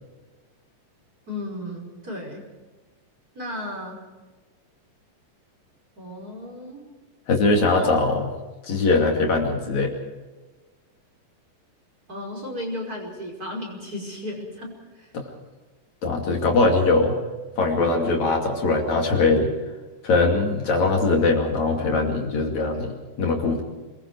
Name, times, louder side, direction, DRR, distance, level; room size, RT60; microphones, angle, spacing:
voice 1, 1.3-2.4 3.3-4.0 6.0-6.8 7.7-8.0 12.1-15.1, left 1 dB, 25° right, -1 dB, 5.6 m, -34 dB
voice 2, 7.3-8.2 8.6-9.9 15.1-15.3 16.0-17.2 17.6-19.5 20.0-22.9 23.2-23.6, left 3 dB, 55° left, 1 dB, 3.8 m, -21 dB
28.0 x 21.5 x 4.8 m, 1.2 s
omnidirectional pair, 3.9 m